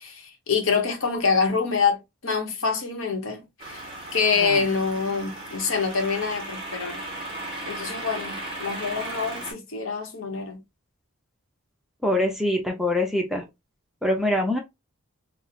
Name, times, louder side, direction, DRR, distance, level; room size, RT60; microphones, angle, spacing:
voice 1, 0.0-7.0 7.6-10.6, left 5 dB, 65° left, 0.9 m, -26 dB
sound 1, 3.6-9.5, right 1 dB, 25° right, 1.4 m, -36 dB
voice 2, 12.0-13.4 14.0-14.6, left 1 dB, ahead, 0.5 m, -24 dB
4.1 x 2.1 x 2.5 m
head